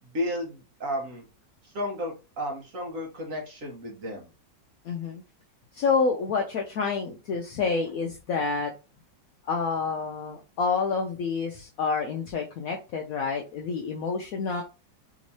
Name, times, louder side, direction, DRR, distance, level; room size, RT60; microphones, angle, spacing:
voice 1, 0.0-1.2 1.6-4.3, left 1 dB, 50° right, 0 dB, 1.3 m, -33 dB
voice 2, 4.8-5.2 5.7-8.7 9.4-14.6, left 5 dB, 70° left, 2 dB, 0.8 m, -28 dB
3.5 x 3.0 x 2.7 m, 0.30 s
omnidirectional pair, 2.0 m